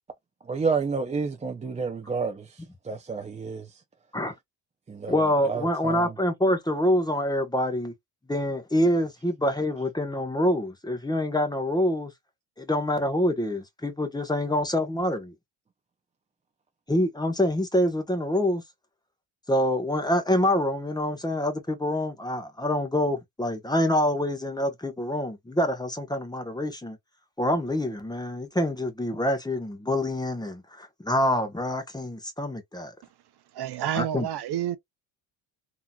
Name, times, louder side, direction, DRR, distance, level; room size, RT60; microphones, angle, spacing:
voice 1, 0.5-2.5 2.8-3.7 4.9-5.1 5.5-6.1, right 5 dB, 15° right, 0.5 m, -29 dB
voice 2, 5.1-7.9 8.3-12.1 12.6-15.3 16.9-18.6 19.5-27.0 27.4-32.9 34.0-34.3, left 1 dB, 10° left, 1.1 m, -26 dB
voice 3, 33.5-34.8, right 11 dB, 55° right, 0.8 m, -29 dB
3.5 x 3.0 x 2.3 m
supercardioid pair, 85°, 47 cm